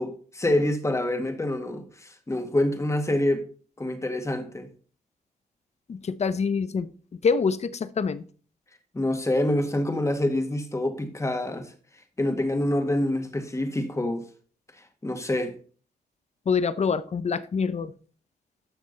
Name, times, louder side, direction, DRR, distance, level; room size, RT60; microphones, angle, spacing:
voice 1, 0.0-3.5 3.8-4.7 8.9-11.7 12.2-14.3 15.0-15.6, left 1 dB, 15° left, 1.8 m, -26 dB
voice 2, 5.9-8.2 16.5-17.9, left 5 dB, 40° left, 0.8 m, -26 dB
13.0 x 6.2 x 4.1 m
cardioid pair, 95°, 16 cm